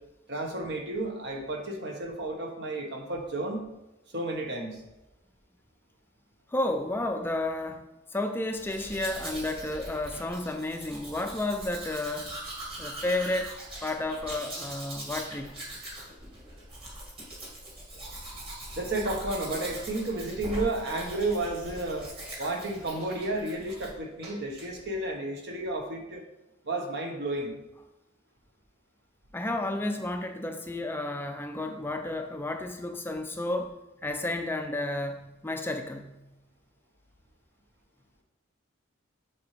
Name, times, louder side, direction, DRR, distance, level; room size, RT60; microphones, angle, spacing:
voice 1, 0.3-3.6 4.1-4.8 18.7-22.1 22.4-26.2 26.6-27.6, right 2 dB, 60° right, 2 dB, 1.3 m, -32 dB
voice 2, 6.5-7.8 8.1-12.3 12.8-13.5 13.8-15.6 29.3-33.7 34.0-36.2, left 2 dB, 10° left, 5 dB, 0.4 m, -32 dB
Domestic sounds home sounds, 8.5-23.9 24.2-24.7, right 1 dB, 30° right, 2.2 m, -41 dB
7.1 x 6.1 x 3.3 m, 0.97 s
head